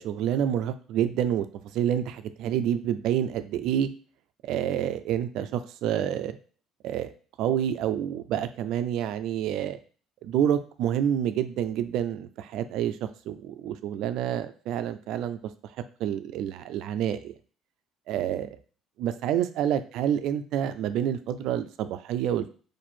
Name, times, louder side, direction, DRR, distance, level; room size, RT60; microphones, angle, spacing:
voice 1, 0.0-1.5 1.7-3.9 4.4-6.4 6.8-7.1 7.4-9.8 10.2-15.4 16.0-17.3 18.1-18.5 19.0-22.5, right 10 dB, 65° right, 11 dB, 0.3 m, -28 dB
4.3 x 2.6 x 4.3 m, 0.41 s
cardioid pair, 170°, 0 cm